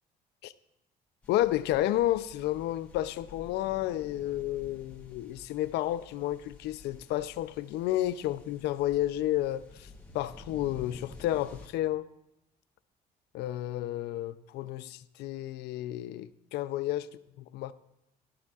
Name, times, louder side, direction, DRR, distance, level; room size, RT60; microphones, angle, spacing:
sound 1, 1.2-11.7, left 2 dB, 10° left, 1.8 m, -51 dB
voice 1, 1.3-12.1 13.3-17.1 17.4-17.7, left 14 dB, 80° left, 0.5 m, -31 dB
14.0 x 12.0 x 2.4 m
cardioid pair, 110°, 17 cm